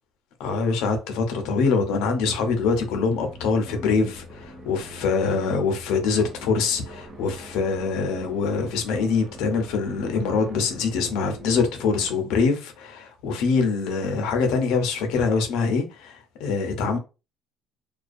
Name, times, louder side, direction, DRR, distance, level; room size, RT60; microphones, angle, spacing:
voice 1, 0.4-17.0, left 4 dB, 80° left, 0.6 m, -24 dB
sound 1, 2.4-12.1, equal, 20° right, 0.5 m, -43 dB
2.4 x 2.3 x 2.5 m
cardioid pair, 130°, 0 cm